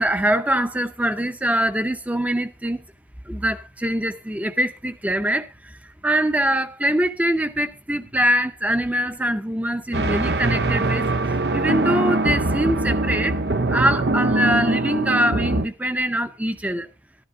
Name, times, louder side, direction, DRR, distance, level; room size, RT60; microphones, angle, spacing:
voice 1, 0.0-2.8 3.3-13.3 13.7-16.9, equal, 10° right, 0.7 m, -23 dB
sound 1, 9.9-15.7, right 2 dB, 60° right, 0.7 m, -22 dB
12.5 x 10.5 x 3.7 m
head